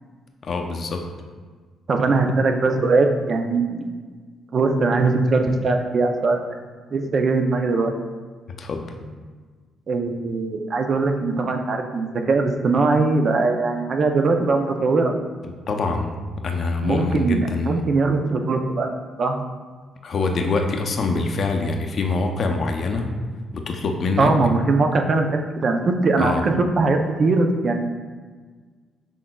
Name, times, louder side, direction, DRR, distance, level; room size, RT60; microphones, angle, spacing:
voice 1, 0.4-1.1 8.6-9.0 15.4-16.1 16.4-17.9 20.0-23.1 23.5-24.3 26.2-26.4, left 3 dB, 50° left, 3 dB, 0.6 m, -24 dB
voice 2, 1.9-3.9 4.5-6.6 6.9-7.9 9.9-15.1 16.8-18.9 19.2-19.4 24.2-27.8, right 3 dB, 50° right, 5 dB, 0.5 m, -21 dB
6.0 x 3.7 x 2.3 m, 1.5 s
cardioid pair, 90°, 0 cm